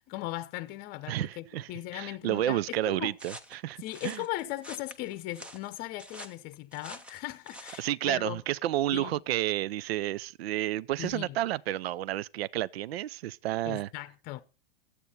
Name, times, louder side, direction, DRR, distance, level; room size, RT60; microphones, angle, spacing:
voice 1, 0.1-3.1 3.8-8.4 8.9-9.2 11.0-11.4 13.7-14.4, left 16 dB, 30° left, 0.7 m, -38 dB
voice 2, 1.1-4.2 7.8-13.9, right 14 dB, 70° right, 0.5 m, -31 dB
sound 1, 3.2-7.9, equal, 5° right, 0.4 m, -47 dB
12.5 x 8.3 x 4.1 m
hypercardioid pair, 140°, 32 cm